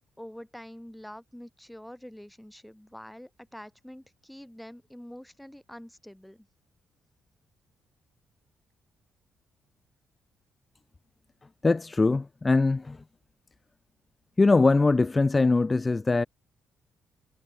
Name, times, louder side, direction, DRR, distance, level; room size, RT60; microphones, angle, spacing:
voice 1, 0.2-6.5, equal, 5° left, 4.0 m, -46 dB
voice 2, 11.6-13.0 14.4-16.3, left 3 dB, 25° left, 1.5 m, -22 dB
cardioid pair, 90°, 0 cm